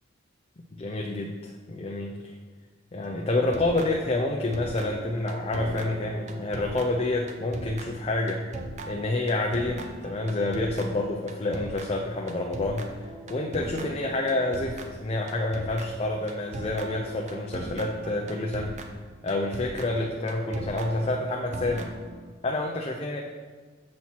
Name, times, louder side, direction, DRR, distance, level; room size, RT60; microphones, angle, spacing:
voice 1, 0.7-2.3 2.9-8.4 8.9-12.9 13.3-18.7 19.2-21.9 22.4-23.2, left 2 dB, 30° left, 0 dB, 0.5 m, -28 dB
sound 1, 3.0-4.3 4.5-22.3, right 2 dB, 40° right, 0.6 m, -40 dB
7.5 x 4.3 x 6.0 m, 1.5 s
head